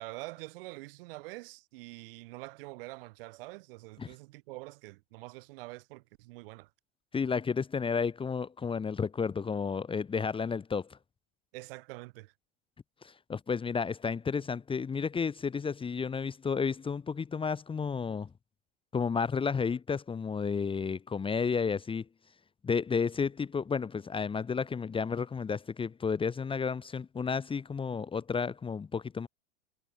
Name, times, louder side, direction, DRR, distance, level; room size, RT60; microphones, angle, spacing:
voice 1, 0.0-6.7 11.5-12.3, right 22 dB, 60° right, 5.4 m, -45 dB
voice 2, 7.1-11.0 13.0-18.3 18.9-22.0 22.6-29.3, left 5 dB, 15° left, 1.5 m, -32 dB
hypercardioid pair, 95°, 32 cm